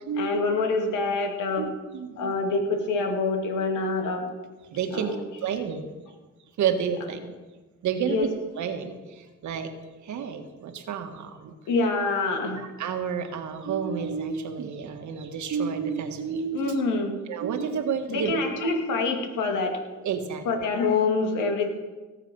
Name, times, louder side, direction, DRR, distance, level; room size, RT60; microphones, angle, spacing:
voice 1, 0.2-1.7 2.2-4.2 4.9-5.2 8.1-8.3 11.7-12.6 16.5-17.2 18.1-19.7 20.5-21.7, left 3 dB, 85° left, 3 dB, 2.3 m, -26 dB
voice 2, 1.6-2.3 4.7-5.8 6.6-7.3 7.8-8.3 8.6-9.7 10.0-11.5 12.6-16.8 17.3-18.3 20.0-20.7, right 7 dB, 70° right, 6 dB, 1.6 m, -30 dB
18.0 x 7.4 x 5.4 m, 1.2 s
cardioid pair, 90°, 30 cm